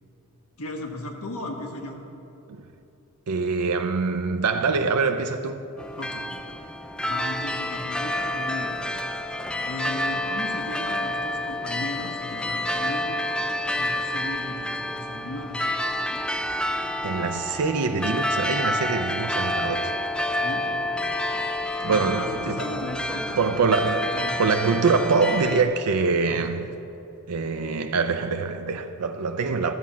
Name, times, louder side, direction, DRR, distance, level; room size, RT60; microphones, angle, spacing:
voice 1, 0.6-2.0 6.0-6.2 7.0-8.7 9.6-13.2 13.7-15.6 20.3-20.6 21.9-23.4 24.1-24.4 26.3-26.7, left 1 dB, 70° left, 1.3 m, -36 dB
voice 2, 3.3-5.6 17.0-19.9 21.1-21.2 21.8-22.6 23.4-26.7 27.3-29.7, right 4 dB, 90° right, 0.5 m, -24 dB
sound 1, 5.8-25.6, left 1 dB, 5° left, 0.4 m, -29 dB
12.5 x 7.4 x 5.7 m
head